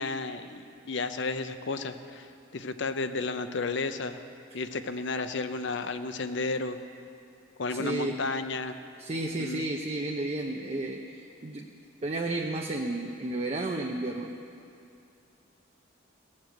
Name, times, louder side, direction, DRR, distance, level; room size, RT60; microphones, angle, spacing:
voice 1, 0.0-2.3 2.5-4.2 4.5-6.8 7.6-8.7 9.4-9.7, left 3 dB, 60° left, 10 dB, 0.6 m, -32 dB
voice 2, 7.7-8.2 9.0-11.7 12.0-14.4, right 2 dB, 30° right, 1 dB, 0.6 m, -32 dB
17.5 x 7.4 x 7.8 m, 2.7 s
head